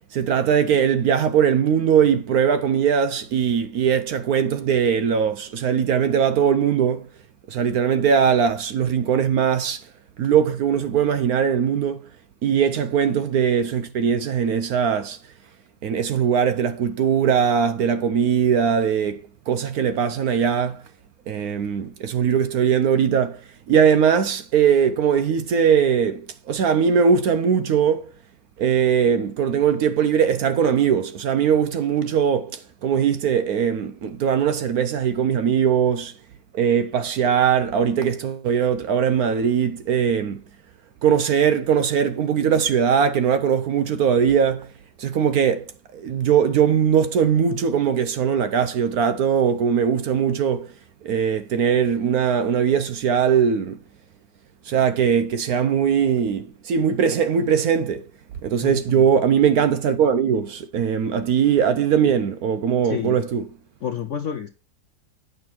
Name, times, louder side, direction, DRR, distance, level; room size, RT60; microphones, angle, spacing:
voice 1, 0.1-7.1 7.5-9.9 10.2-12.1 12.4-15.2 15.8-20.8 21.3-28.1 28.6-36.1 36.5-40.4 41.0-44.7 45.0-50.7 51.0-53.8 54.7-58.0 58.4-63.4, right 7 dB, 65° right, 1.0 m, -20 dB
voice 2, 58.6-59.1 62.8-63.2 63.8-64.5, left 8 dB, 65° left, 0.7 m, -29 dB
9.1 x 6.1 x 4.5 m
omnidirectional pair, 2.0 m